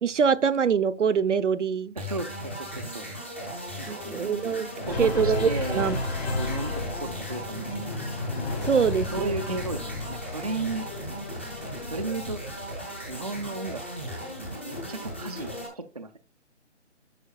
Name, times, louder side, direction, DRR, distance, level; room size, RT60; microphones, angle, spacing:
voice 1, 0.0-2.0 3.9-4.7 5.0-6.0 8.6-9.6, right 6 dB, 75° right, 0.8 m, -24 dB
sound 1, 2.0-15.7, equal, 10° left, 0.7 m, -37 dB
voice 2, 2.0-3.1 3.8-4.2 4.9-5.8 6.3-8.0 9.1-10.9 11.7-12.4 13.1-13.8 14.1-14.3 14.7-16.2, right 3 dB, 35° right, 0.5 m, -35 dB
sound 2, 4.8-13.4, left 3 dB, 55° left, 3.3 m, -33 dB
11.0 x 7.3 x 2.3 m
hypercardioid pair, 170°, 36 cm